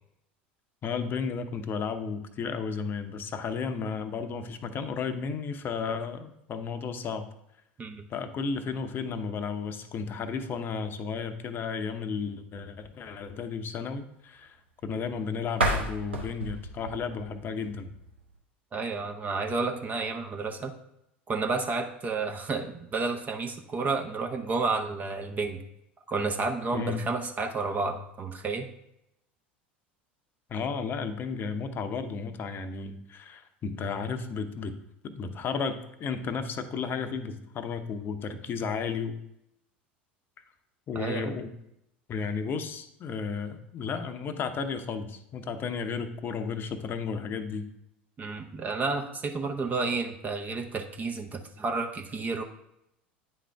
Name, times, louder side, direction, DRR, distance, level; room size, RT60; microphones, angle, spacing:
voice 1, 0.8-7.3 8.1-14.6 14.8-17.9 26.7-27.0 30.5-34.7 35.0-39.2 40.9-41.5 42.1-47.7, left 5 dB, 35° left, 9 dB, 0.7 m, -33 dB
sound 1, 15.5-18.4, right 1 dB, 90° right, 0.9 m, -32 dB
voice 2, 18.7-20.7 21.3-25.6 26.1-28.7 40.9-41.3 48.2-52.4, right 4 dB, 30° right, 4 dB, 0.7 m, -31 dB
9.1 x 3.7 x 3.4 m, 0.81 s
hypercardioid pair, 80°, 6 cm